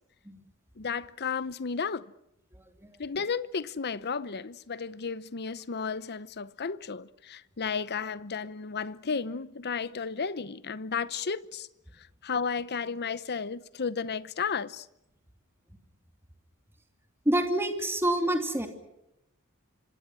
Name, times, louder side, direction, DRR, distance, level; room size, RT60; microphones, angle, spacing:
voice 1, 0.8-2.0 3.0-11.7 12.2-14.9, left 5 dB, 50° left, 0.8 m, -33 dB
voice 2, 17.2-18.7, right 1 dB, 10° right, 2.8 m, -27 dB
26.0 x 25.5 x 6.2 m
head